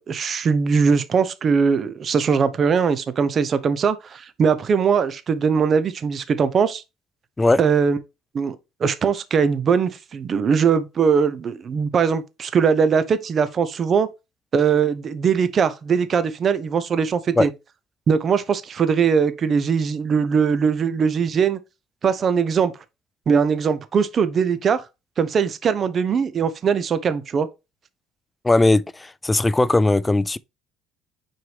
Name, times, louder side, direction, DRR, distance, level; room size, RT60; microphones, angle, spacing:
voice 1, 0.1-6.8 7.6-8.0 8.3-14.1 14.5-17.5 18.1-21.6 22.0-22.7 23.3-24.8 25.2-27.5, right 6 dB, 40° right, 0.8 m, -20 dB
voice 2, 28.4-30.4, left 2 dB, 15° left, 0.3 m, -18 dB
6.3 x 4.5 x 3.4 m
cardioid pair, 110°, 0 cm